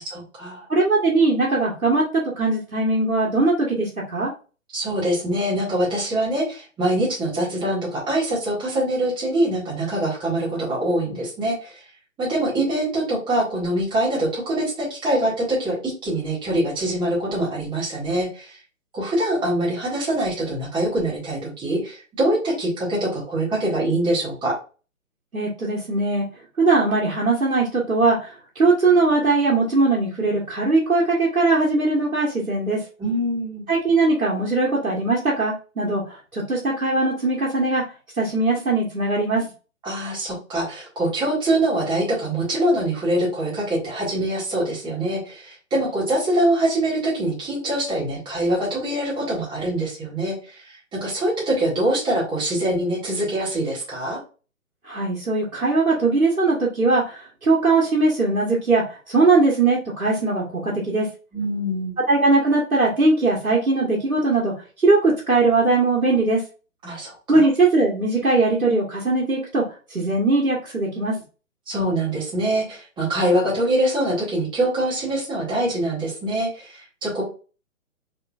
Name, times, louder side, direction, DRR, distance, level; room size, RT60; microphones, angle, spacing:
voice 1, 0.1-0.7 4.7-11.8 12.2-18.6 18.9-24.6 33.0-33.6 39.8-54.2 61.3-61.9 66.8-67.5 71.7-77.2, right 1 dB, 10° right, -6 dB, 1.9 m, -24 dB
voice 2, 0.7-4.3 25.3-26.2 26.6-32.8 33.7-37.8 38.2-39.5 54.8-61.1 62.1-66.4 67.3-69.6 69.9-71.2, right 3 dB, 90° right, -4 dB, 1.5 m, -20 dB
4.7 x 3.7 x 2.4 m, 0.35 s
figure-of-eight pair, 135°, 41 cm